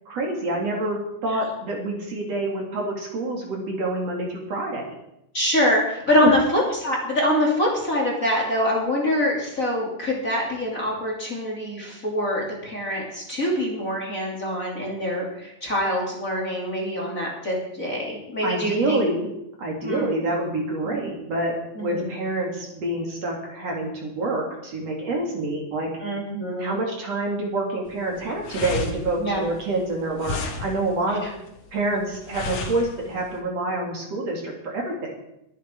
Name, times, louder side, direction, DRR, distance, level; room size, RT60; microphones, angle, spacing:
voice 1, 0.1-4.9 18.4-19.3 19.6-21.5 21.8-25.9 26.6-31.3 31.7-35.1, right 2 dB, 50° right, 0 dB, 3.4 m, -27 dB
voice 2, 5.3-19.0 19.8-20.1 20.8-21.2 21.7-22.1 26.0-26.8 29.2-29.4, left 1 dB, 25° left, -3 dB, 3.0 m, -25 dB
sound 1, 27.9-33.4, left 3 dB, 55° left, 2.7 m, -33 dB
22.5 x 9.3 x 4.6 m, 0.84 s
omnidirectional pair, 3.8 m